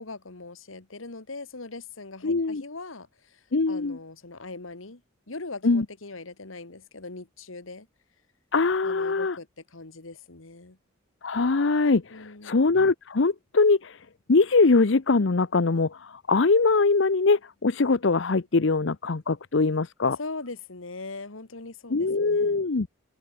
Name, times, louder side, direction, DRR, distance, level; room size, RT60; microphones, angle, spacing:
voice 1, 0.0-5.0 5.3-7.9 8.8-10.8 12.1-12.5 20.2-22.6, left 3 dB, 80° left, 2.0 m, -41 dB
voice 2, 2.2-2.6 3.5-4.0 5.6-5.8 8.5-9.4 11.2-20.2 21.9-22.9, left 3 dB, 60° left, 0.7 m, -22 dB
open air
head